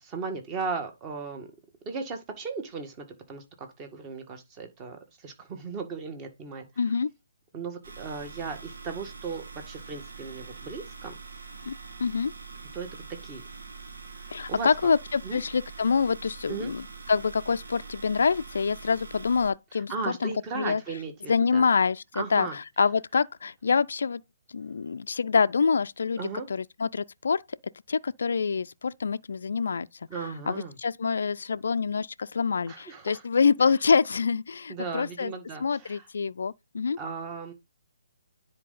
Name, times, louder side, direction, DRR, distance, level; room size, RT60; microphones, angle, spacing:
voice 1, 0.0-1.5 1.8-6.7 7.5-11.1 12.7-13.4 14.2-14.7 15.2-15.4 16.5-16.7 19.7-21.7 22.1-22.6 26.2-26.5 30.1-30.8 32.7-33.2 34.7-36.1 37.0-37.5, right 4 dB, 25° right, 1.8 m, -36 dB
voice 2, 6.8-7.1 11.6-11.7 12.0-12.3 14.3-20.8 21.3-24.2 24.5-26.2 26.5-27.4 27.9-29.9 30.5-35.3 35.6-37.0, left 5 dB, 65° left, 0.3 m, -26 dB
sound 1, 7.8-19.5, right 4 dB, 70° right, 2.1 m, -44 dB
9.9 x 4.5 x 4.0 m
figure-of-eight pair, 140°, 0 cm